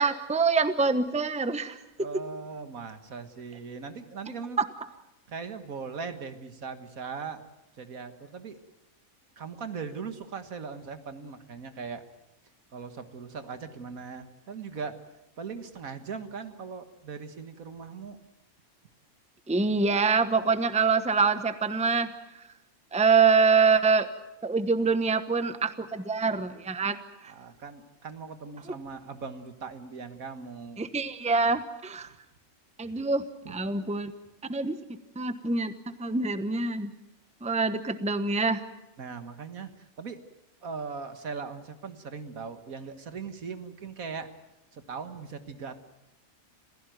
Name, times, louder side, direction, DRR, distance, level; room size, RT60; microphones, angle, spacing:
voice 1, 0.0-1.8 4.6-4.7 19.5-22.1 22.9-24.1 24.4-27.0 27.2-27.3 30.8-32.1 32.8-34.1 34.5-34.8 35.2-35.7 36.0-36.9 37.4-38.6, right 4 dB, 5° right, 11 dB, 0.9 m, -25 dB
voice 2, 2.0-4.6 5.3-7.4 7.8-8.6 9.4-12.0 12.7-15.0 15.4-18.2 26.3-26.4 27.3-30.9 33.5-33.6 39.0-40.2 40.6-44.3 44.7-45.8, right 5 dB, 75° right, 9 dB, 1.9 m, -39 dB
27.5 x 16.0 x 9.2 m, 0.96 s
omnidirectional pair, 1.5 m